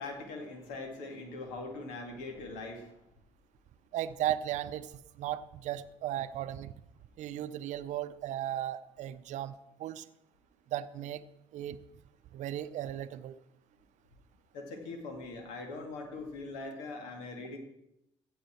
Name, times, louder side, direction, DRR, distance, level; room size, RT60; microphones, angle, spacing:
voice 1, 0.0-2.9 14.5-17.6, left 3 dB, 80° left, 3 dB, 2.0 m, -41 dB
voice 2, 3.9-4.9 5.2-6.7 7.2-10.0 10.7-11.2 11.5-11.8 12.3-13.4, right 12 dB, 65° right, 14 dB, 0.6 m, -36 dB
15.5 x 7.0 x 4.4 m, 0.86 s
hypercardioid pair, 55°, 13 cm